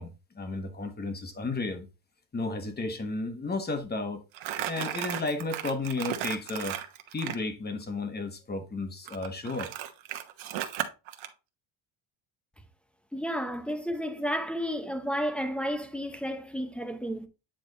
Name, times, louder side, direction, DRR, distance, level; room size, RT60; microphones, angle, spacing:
voice 1, 0.0-1.9 2.3-4.2 4.7-6.8 7.1-9.7, left 3 dB, 20° left, 1.2 m, -33 dB
Crumpling crinkling, 4.3-7.4 9.1-11.3, right 11 dB, 75° right, 1.0 m, -35 dB
voice 2, 13.1-17.3, equal, ahead, 0.8 m, -32 dB
8.8 x 3.5 x 3.9 m
cardioid pair, 140°, 48 cm